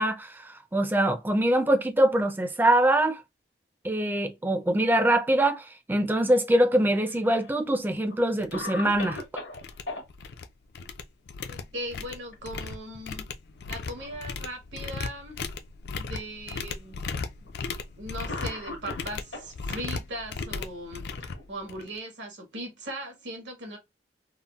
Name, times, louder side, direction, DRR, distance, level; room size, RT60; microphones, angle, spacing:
voice 1, 0.0-3.2 3.8-9.2, right 1 dB, 10° right, 0.3 m, -23 dB
Cough, 6.7-7.6 8.1-8.2 8.5-10.0 11.9-12.3 12.7-12.8 13.6-14.3 15.1-15.2 16.2-16.3 17.5-17.6 18.3-19.5 20.5-21.9, left 2 dB, 80° left, 1.0 m, -40 dB
sound 1, 7.9-8.0 8.4-8.6 8.9-9.2 9.5-10.5 10.8-22.0, left 4 dB, 60° left, 0.3 m, -36 dB
voice 2, 11.5-13.2 13.7-15.4 16.0-17.0 18.0-21.0 21.5-23.8, right 1 dB, 85° right, 1.3 m, -38 dB
3.8 x 2.0 x 2.2 m
head